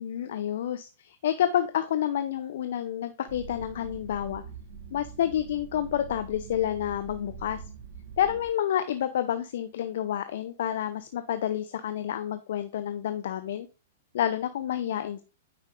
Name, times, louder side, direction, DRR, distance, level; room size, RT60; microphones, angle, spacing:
voice 1, 0.0-4.4 4.9-7.6 8.2-13.7 14.1-15.2, left 10 dB, 60° left, 11 dB, 0.6 m, -29 dB
sound 1, 3.3-8.5, right 6 dB, 60° right, 2.3 m, -44 dB
9.2 x 5.3 x 3.8 m, 0.34 s
figure-of-eight pair, 105°, 0 cm